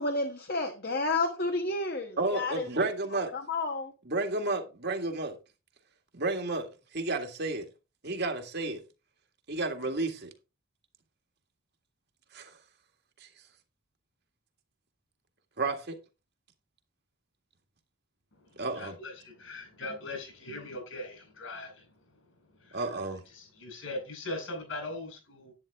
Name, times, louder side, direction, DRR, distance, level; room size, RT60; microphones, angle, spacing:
voice 1, 0.0-2.7 3.3-3.9, left 2 dB, 45° left, 1.2 m, -31 dB
voice 2, 2.2-3.3 4.1-5.4 6.1-7.7 8.0-8.8 9.5-10.3 12.3-12.6 13.2-13.3 15.6-16.0 18.6-18.9 22.7-23.2, right 2 dB, 50° right, 1.8 m, -31 dB
voice 3, 18.3-22.8 23.3-25.5, left 2 dB, 65° left, 5.3 m, -41 dB
10.5 x 9.2 x 3.5 m
head